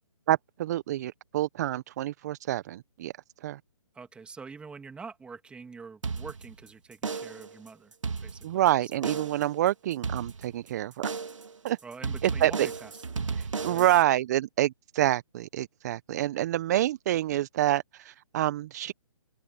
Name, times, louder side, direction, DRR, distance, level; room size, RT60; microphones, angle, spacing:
voice 1, 0.3-3.1 3.4-3.6 8.4-11.0 11.6-11.8 12.2-12.7 13.3-18.9, right 13 dB, 30° right, 0.9 m, -27 dB
voice 2, 3.9-7.9 8.2-8.6 11.8-12.9 13.7-13.9, right 5 dB, 5° right, 2.7 m, -45 dB
sound 1, 6.0-6.7 7.0-7.5 7.9-8.7 9.0-9.5 10.0-10.7 11.0-11.5 12.0-14.0, right 5 dB, 70° right, 2.8 m, -34 dB
open air
figure-of-eight pair, 145°, 17 cm